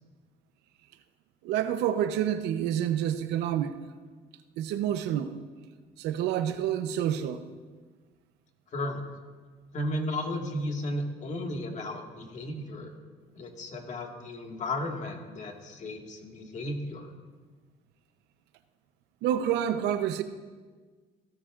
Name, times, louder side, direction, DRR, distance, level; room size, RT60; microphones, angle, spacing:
voice 1, 1.4-3.8 4.6-5.4 6.0-7.4 19.2-20.2, right 10 dB, 90° right, 0.8 m, -28 dB
voice 2, 8.7-9.0 9.7-12.9 13.3-17.1, left 1 dB, 45° left, 1.9 m, -34 dB
16.0 x 13.0 x 2.5 m
cardioid pair, 110°, 17 cm